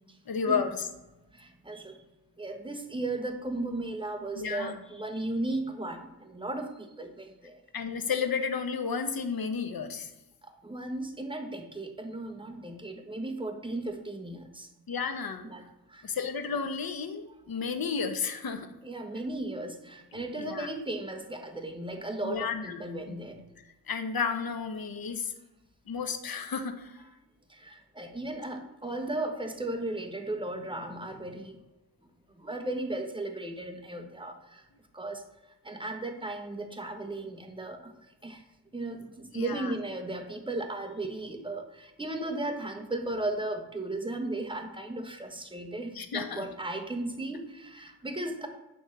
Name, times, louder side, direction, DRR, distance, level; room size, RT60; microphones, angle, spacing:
voice 1, 0.3-0.9 4.4-4.8 7.7-10.1 14.9-15.5 16.0-18.7 20.1-20.7 22.2-22.8 23.1-23.2 23.9-25.3 25.9-27.0 39.3-39.7 45.9-46.5, left 5 dB, 60° left, 7 dB, 1.1 m, -32 dB
voice 2, 1.3-2.0 2.4-7.6 10.6-14.7 15.4-15.6 15.9-16.1 18.8-23.4 27.5-31.6 32.3-34.6 34.9-35.2 35.6-37.9 38.2-38.4 38.7-48.5, right 2 dB, 10° right, 4 dB, 1.2 m, -36 dB
9.4 x 3.6 x 7.1 m, 0.99 s
wide cardioid pair, 105°, 39 cm